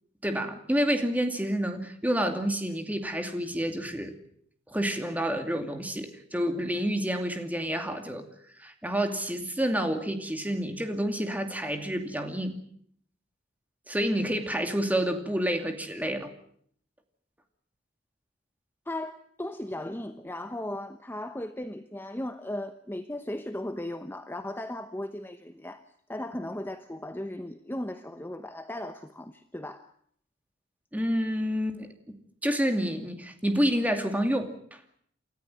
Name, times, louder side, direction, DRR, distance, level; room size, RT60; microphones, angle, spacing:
voice 1, 0.2-4.1 4.7-8.3 8.6-12.6 13.9-16.3 30.9-34.8, equal, 10° right, 6 dB, 2.6 m, -29 dB
voice 2, 18.9-25.8 26.1-29.9, left 1 dB, 10° left, 8 dB, 0.9 m, -36 dB
29.0 x 14.0 x 9.1 m, 0.65 s
head